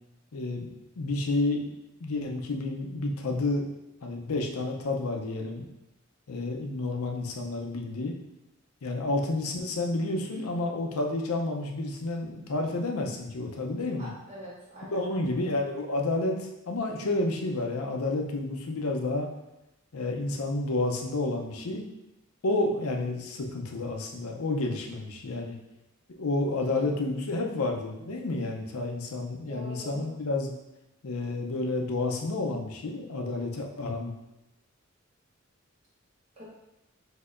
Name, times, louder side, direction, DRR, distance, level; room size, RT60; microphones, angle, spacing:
voice 1, 0.3-0.7 1.0-1.7 2.0-3.6 4.0-5.7 6.3-8.1 8.8-14.1 14.9-16.4 16.7-19.3 19.9-21.8 22.4-25.6 26.2-30.5 31.0-34.1, left 2 dB, 85° left, 1 dB, 0.6 m, -30 dB
voice 2, 14.0-15.4 26.8-27.1 29.5-30.1 36.4-36.5, equal, 30° right, -9 dB, 1.0 m, -44 dB
6.3 x 2.8 x 2.5 m, 0.92 s
head